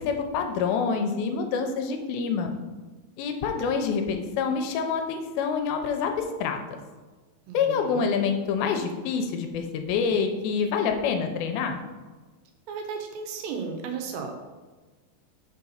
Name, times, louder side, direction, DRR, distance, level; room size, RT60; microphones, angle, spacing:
voice 1, 0.0-2.5 3.2-6.6 7.5-11.8, left 6 dB, 85° left, 5 dB, 2.4 m, -27 dB
voice 2, 7.5-8.1 12.7-14.4, right 5 dB, 80° right, 4 dB, 2.5 m, -34 dB
5.6 x 4.7 x 5.6 m, 1.3 s
omnidirectional pair, 4.3 m